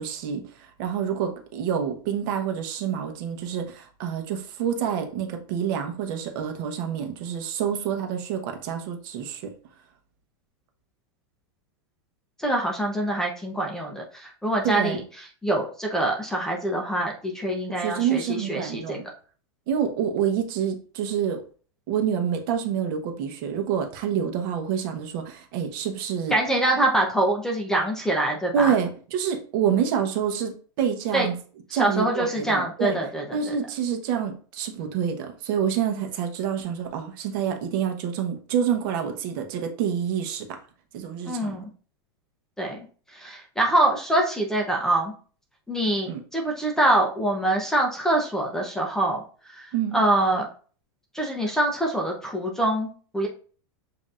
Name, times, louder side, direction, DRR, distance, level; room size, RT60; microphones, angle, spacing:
voice 1, 0.0-9.5 14.6-15.0 17.7-19.1 19.7-21.4 21.9-26.3 28.5-31.3 31.7-33.0 33.3-40.6 40.9-41.6 46.1-46.2 49.7-50.0, right 8 dB, 50° right, 5 dB, 0.9 m, -27 dB
voice 2, 12.4-19.0 26.3-28.7 31.1-31.3 31.7-33.5 41.2-41.7 42.6-45.1 45.7-50.5 51.1-53.3, right 1 dB, 5° left, 0 dB, 0.6 m, -25 dB
7.3 x 2.8 x 2.5 m, 0.41 s
supercardioid pair, 150°, 14 cm